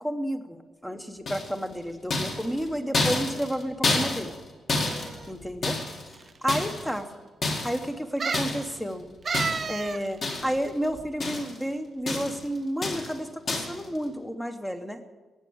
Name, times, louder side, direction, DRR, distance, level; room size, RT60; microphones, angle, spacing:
voice 1, 0.0-4.3 5.3-5.8 6.4-7.0 7.6-9.0 9.7-15.0, equal, 5° left, 7 dB, 0.9 m, -31 dB
sound 1, 1.3-1.7 2.1-6.1 6.5-7.0 7.4-7.9 8.3-8.8 9.3-9.8 10.2-10.7 10.9-11.6 12.1-12.5 12.8-13.2 13.5-13.8, left 2 dB, 40° left, 2.1 m, -29 dB
sound 2, 4.8-5.3 6.1-6.2 6.5-6.6 8.2-8.6 9.3-10.0 10.3-10.4, right 5 dB, 30° right, 0.4 m, -31 dB
14.5 x 8.9 x 8.6 m, 1.3 s
wide cardioid pair, 180°, 0 cm